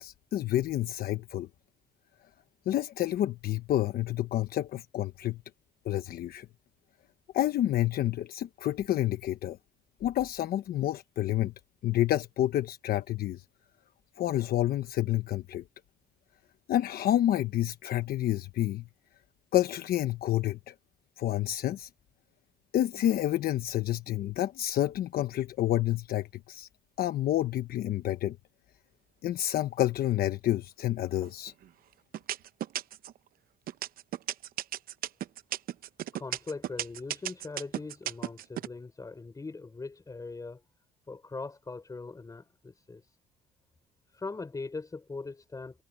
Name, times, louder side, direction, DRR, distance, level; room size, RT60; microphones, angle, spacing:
voice 1, 0.0-1.5 2.7-5.4 5.8-6.5 7.3-9.6 10.0-11.5 11.8-13.4 14.2-15.6 16.7-18.9 19.5-20.7 21.2-21.9 22.7-26.7 27.0-28.4 29.2-31.5, left 13 dB, 65° left, 1.1 m, -29 dB
sound 1, 31.2-31.7 32.1-33.2 33.7-38.7, right 12 dB, 60° right, 0.8 m, -34 dB
voice 2, 36.1-40.6 41.1-43.0 44.1-45.8, left 3 dB, 20° left, 6.0 m, -40 dB
cardioid pair, 110°, 17 cm